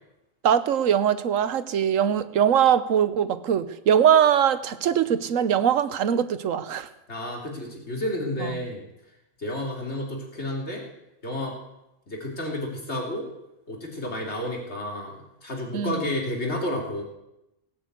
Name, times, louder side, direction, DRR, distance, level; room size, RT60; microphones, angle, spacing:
voice 1, 0.4-6.9 8.4-8.5 15.7-16.0, right 9 dB, 90° right, 14 dB, 1.2 m, -22 dB
voice 2, 7.1-8.8 9.4-10.8 11.2-11.6 12.1-13.3 13.7-17.0, left 1 dB, 55° left, 0 dB, 3.7 m, -31 dB
17.5 x 9.4 x 8.3 m, 0.90 s
omnidirectional pair, 1.3 m